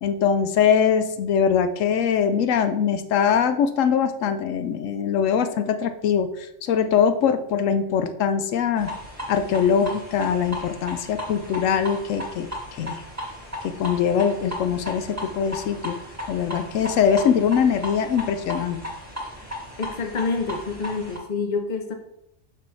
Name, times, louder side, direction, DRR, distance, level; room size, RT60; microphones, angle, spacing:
voice 1, 0.0-8.9 9.3-13.0 13.6-16.0 16.3-18.8, left 7 dB, 80° left, 9 dB, 0.9 m, -22 dB
sound 1, 8.8-21.2, left 1 dB, 10° right, 1.8 m, -36 dB
voice 2, 19.8-21.9, left 4 dB, 40° left, 5 dB, 0.7 m, -27 dB
6.0 x 5.6 x 3.2 m, 0.81 s
omnidirectional pair, 1.3 m